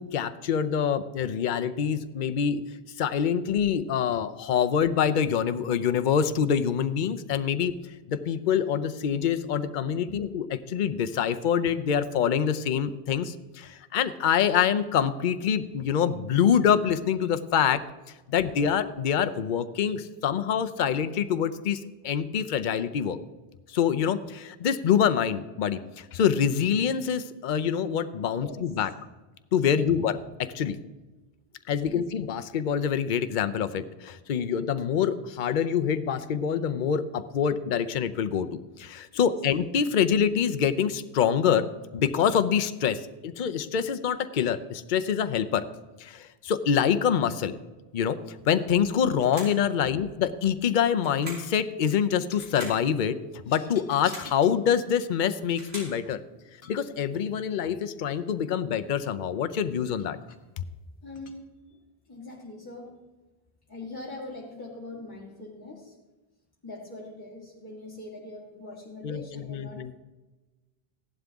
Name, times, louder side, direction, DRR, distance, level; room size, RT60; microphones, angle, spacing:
voice 1, 0.0-2.6 3.0-7.7 8.1-17.8 18.3-23.2 23.7-28.9 29.5-30.1 30.5-30.8 31.7-41.7 41.9-45.6 46.0-47.5 47.9-48.2 48.4-53.2 53.5-56.2 56.7-60.2 60.6-60.7 69.0-69.9, left 8 dB, 55° left, 11 dB, 0.8 m, -25 dB
sound 1, 49.1-49.7 51.0-51.6 52.3-52.8 53.8-54.4 55.2-56.0, right 1 dB, 80° right, 4.2 m, -42 dB
sound 2, 50.4-50.7 52.3-52.7 53.4-54.6 55.7-56.0 56.6-56.9 59.3-59.4 60.0-60.4 61.1-61.4, left 5 dB, 80° left, 1.3 m, -48 dB
voice 2, 61.0-61.8 62.1-63.0 63.7-66.0 66.6-69.9, left 2 dB, 20° left, -5 dB, 2.0 m, -42 dB
15.5 x 11.5 x 3.5 m, 1.2 s
omnidirectional pair, 1.0 m